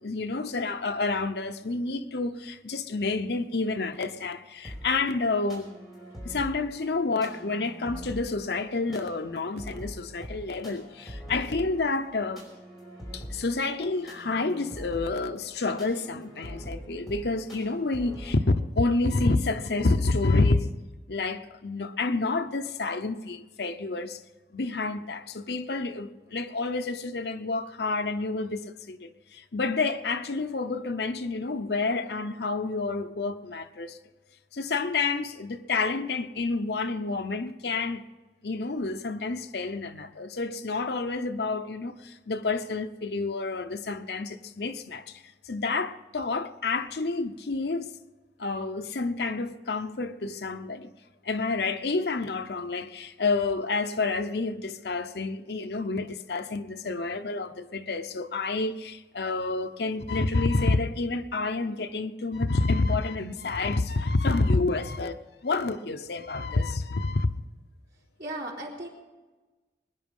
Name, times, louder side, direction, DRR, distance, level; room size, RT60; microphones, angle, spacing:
voice 1, 0.0-5.7 6.2-12.4 13.1-20.7 21.1-24.2 24.5-34.0 34.5-38.0 38.4-47.9 48.4-50.9 51.2-65.2 65.4-67.3, left 3 dB, 65° left, 0.8 m, -29 dB
sound 1, 4.6-18.4, equal, ahead, 5.2 m, -43 dB
voice 2, 68.2-68.9, right 1 dB, 60° right, 4.0 m, -36 dB
22.0 x 10.5 x 5.5 m
head